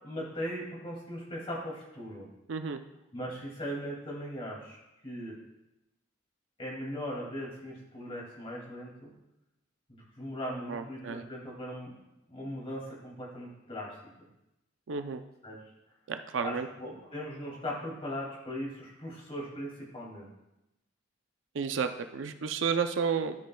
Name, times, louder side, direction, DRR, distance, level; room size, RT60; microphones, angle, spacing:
voice 1, 0.0-2.3 3.1-5.4 6.6-9.1 9.9-11.9 12.3-14.0 15.4-15.6 16.4-20.3, equal, 30° left, -3 dB, 2.3 m, -39 dB
voice 2, 2.5-2.8 10.7-11.2 14.9-15.2 16.1-16.7 21.5-23.4, right 6 dB, 70° right, 8 dB, 0.5 m, -31 dB
13.5 x 5.3 x 2.2 m, 0.91 s
head